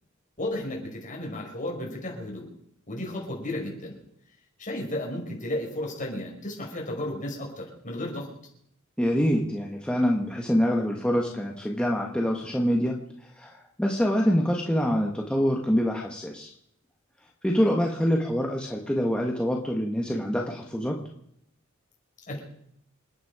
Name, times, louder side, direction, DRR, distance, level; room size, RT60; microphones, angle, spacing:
voice 1, 0.4-2.5 2.9-4.0 4.6-8.3 22.3-22.4, left 1 dB, 40° left, -1 dB, 5.5 m, -33 dB
voice 2, 9.0-12.9 13.3-16.5 17.4-21.0, equal, 5° left, -1 dB, 1.5 m, -25 dB
28.0 x 9.5 x 4.9 m, 0.71 s
head